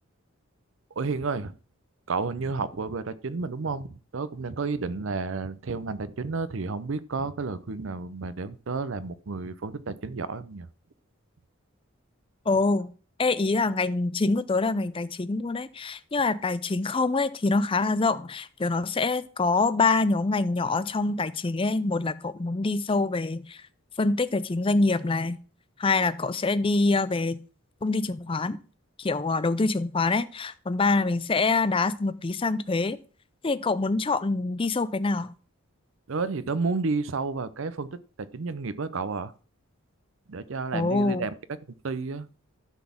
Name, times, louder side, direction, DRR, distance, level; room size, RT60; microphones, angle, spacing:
voice 1, 1.0-1.6 2.1-10.7 36.1-39.3 40.3-41.3 41.8-42.3, right 4 dB, 65° right, 0.6 m, -31 dB
voice 2, 12.5-12.9 13.2-23.6 24.0-25.4 25.8-27.4 27.8-28.6 29.0-33.0 33.4-35.3 40.7-41.3, left 3 dB, 25° left, 0.4 m, -25 dB
12.0 x 4.1 x 7.0 m
head